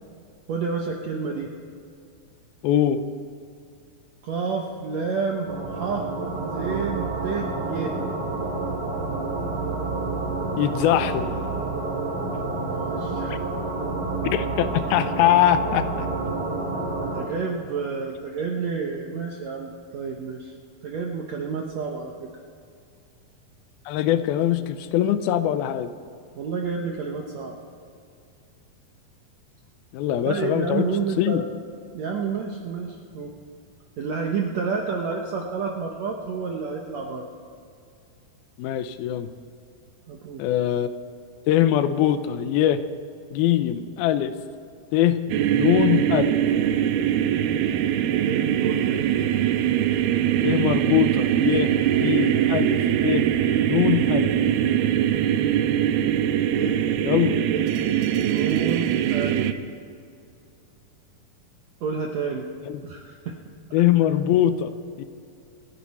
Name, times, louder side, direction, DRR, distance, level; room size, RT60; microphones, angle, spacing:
voice 1, 0.5-1.5 4.2-6.1 6.4-8.0 12.5-13.3 17.0-20.5 20.8-22.3 26.4-27.6 30.2-31.4 31.9-33.3 34.0-37.3 40.1-40.4 48.2-49.1 56.5-56.8 57.5-57.6 58.2-59.5 61.8-62.5 62.8-63.4, right 5 dB, 70° right, 1 dB, 1.7 m, -29 dB
voice 2, 2.6-3.0 10.6-11.3 13.3-13.4 14.3-16.1 23.9-25.9 29.9-30.9 31.2-31.4 38.6-39.3 40.4-40.9 41.5-42.8 43.3-44.3 44.9-45.2 45.5-46.4 50.4-52.8 53.0-53.3 53.6-54.3 57.0-57.4 62.7-62.8 63.7-64.7 65.0-65.1, left 11 dB, 85° left, 12 dB, 2.6 m, -22 dB
sound 1, 5.5-17.2, right 3 dB, 40° right, 2.7 m, -29 dB
sound 2, 45.3-59.5, right 10 dB, 85° right, 2.5 m, -22 dB
27.5 x 10.5 x 4.2 m, 2.5 s
omnidirectional pair, 4.3 m